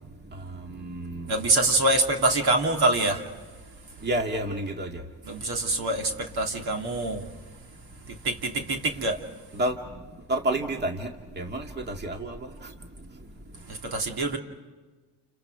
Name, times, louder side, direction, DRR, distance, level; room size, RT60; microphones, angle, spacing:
voice 1, 0.3-1.4 4.0-5.0 9.5-9.8 10.3-12.7, right 1 dB, 20° right, 2.0 m, -30 dB
voice 2, 1.3-3.2 5.2-7.2 8.2-9.2 13.7-14.4, right 2 dB, 55° right, 3.0 m, -25 dB
30.0 x 30.0 x 4.8 m
cardioid pair, 95°, 45 cm